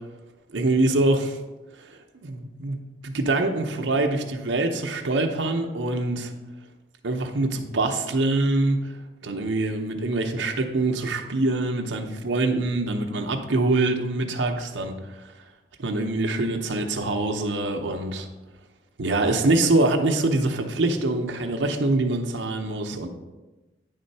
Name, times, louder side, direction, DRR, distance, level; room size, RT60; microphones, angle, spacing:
voice 1, 0.5-1.4 1.7-6.3 7.0-8.9 9.2-15.3 15.8-18.3 19.0-23.1, right 2 dB, 75° right, 4 dB, 0.7 m, -24 dB
9.6 x 3.6 x 5.4 m, 1.1 s
head